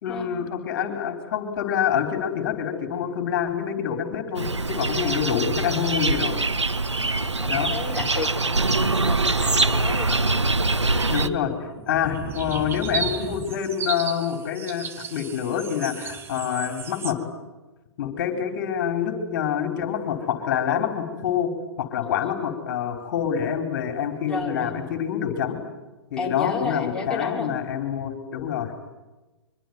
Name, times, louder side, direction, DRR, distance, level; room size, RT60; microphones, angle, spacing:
voice 1, 0.0-6.4 7.5-7.7 11.1-17.2 18.0-21.5 21.8-25.6 26.1-28.7, left 8 dB, 45° left, 6 dB, 4.3 m, -26 dB
sound 1, 4.4-11.3, right 3 dB, 90° right, 1.5 m, -23 dB
voice 2, 7.0-10.3 22.0-22.3 24.3-24.7 26.2-27.5, left 4 dB, 5° left, -4 dB, 5.6 m, -33 dB
sound 2, 10.7-11.4 11.7-17.1, right 6 dB, 15° right, 1.8 m, -34 dB
24.5 x 24.0 x 9.5 m, 1.1 s
figure-of-eight pair, 125°, 14 cm